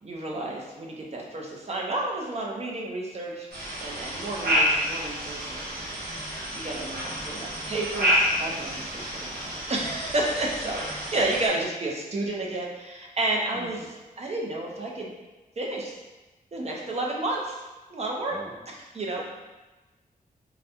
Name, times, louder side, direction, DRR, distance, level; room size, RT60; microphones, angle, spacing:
voice 1, 0.0-3.5 3.8-6.2 6.5-13.8 14.2-15.1 15.6-15.9 16.5-17.6 17.9-18.4 18.9-19.2, right 2 dB, 45° right, -2 dB, 0.7 m, -31 dB
sound 1, 3.5-11.5, equal, 90° right, 0.9 m, -29 dB
voice 2, 13.5-13.9 18.3-18.7 19.2-19.3, right 1 dB, 10° right, -2 dB, 0.3 m, -42 dB
4.0 x 2.2 x 2.7 m, 1.1 s
wide cardioid pair, 100°, 16 cm